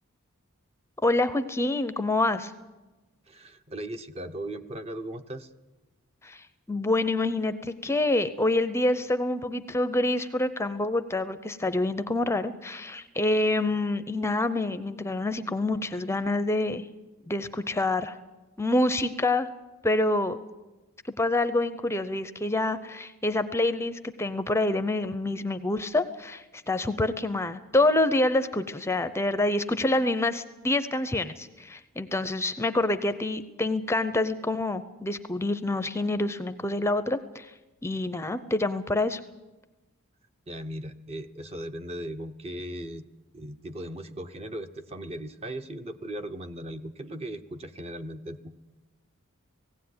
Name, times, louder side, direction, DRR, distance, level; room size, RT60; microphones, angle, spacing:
voice 1, 1.0-2.5 6.2-16.9 17.3-18.2 18.6-19.5 19.8-20.4 21.2-37.5 37.8-39.2, left 2 dB, 10° left, 11 dB, 0.7 m, -27 dB
voice 2, 3.3-5.5 40.5-43.1 43.3-48.5, right 1 dB, 30° right, 9 dB, 0.9 m, -38 dB
17.5 x 16.5 x 9.6 m, 1.1 s
head